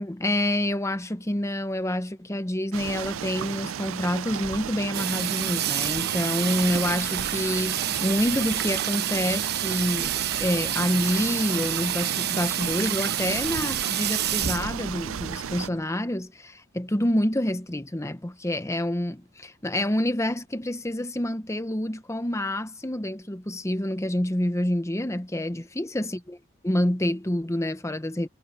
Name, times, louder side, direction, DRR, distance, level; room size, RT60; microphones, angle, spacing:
voice 1, 0.0-26.4 26.6-28.3, left 1 dB, 15° left, 0.9 m, -27 dB
sound 1, 2.7-15.7, right 9 dB, 80° right, 0.4 m, -34 dB
Water tap faucet / Sink (filling or washing), 4.9-15.8, right 10 dB, 55° right, 1.0 m, -29 dB
head